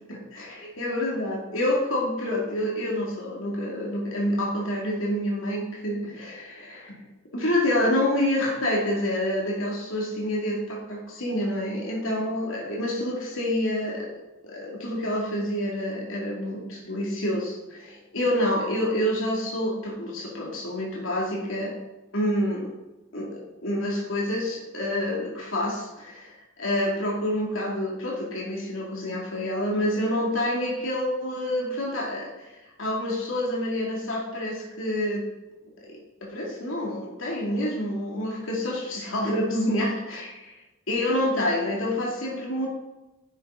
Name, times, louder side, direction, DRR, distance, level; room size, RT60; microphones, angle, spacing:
voice 1, 0.1-7.0 7.3-14.1 14.4-21.7 22.1-22.7 23.1-35.3 35.8-40.5 40.9-42.7, left 1 dB, 85° left, -3 dB, 2.5 m, -28 dB
11.0 x 8.2 x 3.9 m, 1.0 s
head